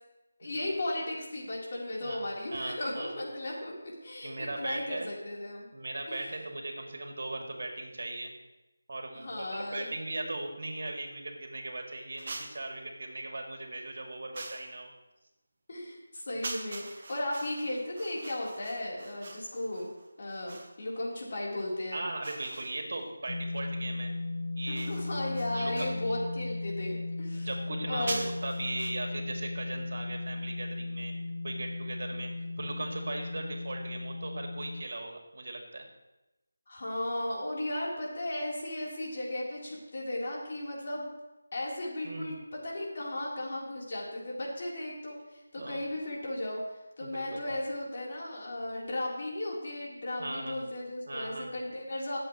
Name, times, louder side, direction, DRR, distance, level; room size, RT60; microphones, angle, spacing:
voice 1, 0.4-3.7 4.0-5.7 6.1-6.3 9.1-9.9 15.7-19.9 20.2-22.0 24.7-27.5 27.9-28.2 36.7-41.1 41.5-46.6 47.0-52.2, left 1 dB, 50° left, -4 dB, 3.6 m, -35 dB
voice 2, 2.5-3.1 4.2-5.1 5.7-8.3 8.9-14.9 21.9-24.1 24.6-24.9 25.5-25.9 27.3-31.1 31.4-32.3 32.6-35.8 42.0-42.3 45.6-45.8 47.0-47.4 50.2-50.6 51.1-51.6, right 2 dB, 65° right, 2 dB, 2.4 m, -38 dB
sound 1, 12.2-12.7 14.3-14.8 16.4-20.8 22.2-23.1 24.7-26.0 28.1-28.9, right 3 dB, 40° right, 1.5 m, -43 dB
sound 2, 23.3-34.8, left 2 dB, 75° left, 0.6 m, -36 dB
20.5 x 7.9 x 3.1 m, 1.0 s
figure-of-eight pair, 170°, 0 cm